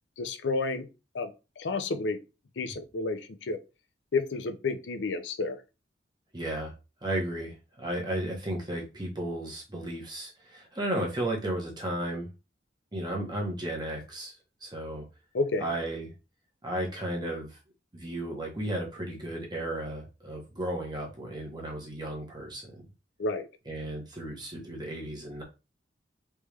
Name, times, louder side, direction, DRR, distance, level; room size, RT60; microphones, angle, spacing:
voice 1, 0.2-0.9 1.1-2.2 2.6-3.6 4.1-5.6 15.3-15.7 23.2-23.5, left 3 dB, 70° left, 0.5 m, -31 dB
voice 2, 6.3-6.7 7.0-12.3 12.9-15.1 15.6-16.1 16.6-17.6 17.9-22.7 23.7-25.4, right 1 dB, 25° right, 1.0 m, -34 dB
3.4 x 3.0 x 3.3 m
head